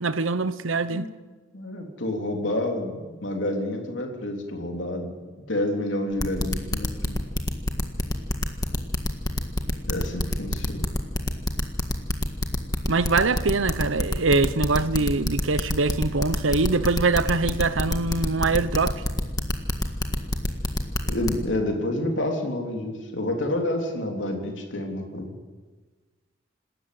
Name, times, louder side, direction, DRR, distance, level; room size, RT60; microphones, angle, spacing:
voice 1, 0.0-1.1 12.9-19.0, right 3 dB, 90° right, 1.0 m, -23 dB
voice 2, 1.5-5.2 5.5-7.2 9.9-10.9 21.1-25.3, left 1 dB, 70° left, 3.6 m, -29 dB
sound 1, 6.2-21.3, left 1 dB, 20° left, 1.8 m, -26 dB
27.0 x 13.5 x 7.8 m
head